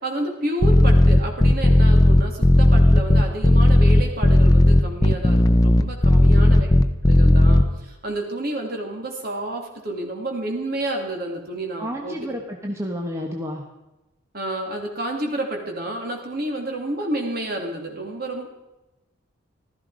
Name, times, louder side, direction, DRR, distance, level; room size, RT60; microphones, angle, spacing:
voice 1, 0.0-6.7 7.0-12.2 14.3-18.5, right 1 dB, 45° right, 1 dB, 3.0 m, -30 dB
sound 1, 0.6-7.6, left 1 dB, 20° left, 0.7 m, -14 dB
voice 2, 6.1-6.5 11.8-13.6, equal, 15° right, 1 dB, 1.1 m, -31 dB
15.5 x 13.0 x 5.1 m, 0.99 s
head